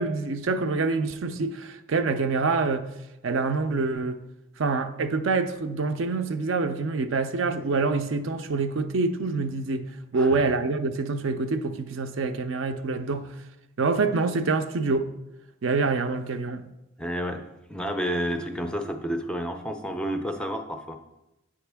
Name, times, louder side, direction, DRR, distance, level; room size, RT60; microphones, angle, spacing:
voice 1, 0.0-2.9 3.2-4.2 4.6-9.8 10.1-13.3 13.8-15.1 15.6-16.7, right 3 dB, 65° right, 0.5 m, -26 dB
voice 2, 17.0-17.4 17.7-21.0, equal, 5° left, 0.4 m, -30 dB
8.6 x 5.1 x 3.4 m
head